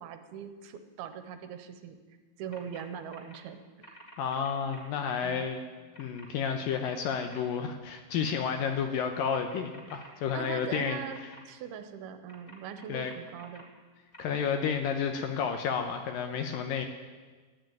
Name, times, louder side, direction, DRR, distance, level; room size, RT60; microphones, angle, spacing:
voice 1, 0.0-2.0 2.4-4.0 5.2-5.5 10.3-13.7, right 8 dB, 80° right, 9 dB, 2.8 m, -41 dB
sound 1, 2.5-2.8 3.1-3.4 3.8-5.4 5.9-6.3 6.7-7.4 8.3-8.7 9.3-11.4 12.3-13.6 14.1-14.2, equal, 15° left, 2.3 m, -51 dB
voice 2, 4.2-5.6 6.0-11.3 12.9-13.1 14.2-16.9, left 7 dB, 75° left, 6 dB, 2.3 m, -31 dB
13.0 x 10.0 x 9.1 m, 1.4 s
omnidirectional pair, 4.6 m